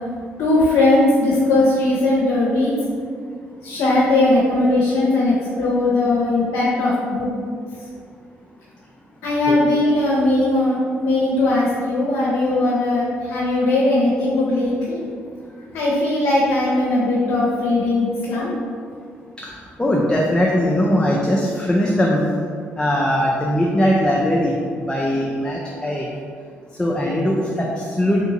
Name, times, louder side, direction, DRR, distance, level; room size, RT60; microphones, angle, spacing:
voice 1, 0.4-2.7 3.6-7.3 9.2-15.0 15.7-18.5, left 2 dB, 75° left, -6 dB, 0.6 m, -19 dB
voice 2, 19.8-22.3 22.8-26.1 26.8-28.3, equal, 15° left, -3 dB, 0.4 m, -20 dB
3.4 x 2.6 x 2.9 m, 2.1 s
supercardioid pair, 60°, 5 cm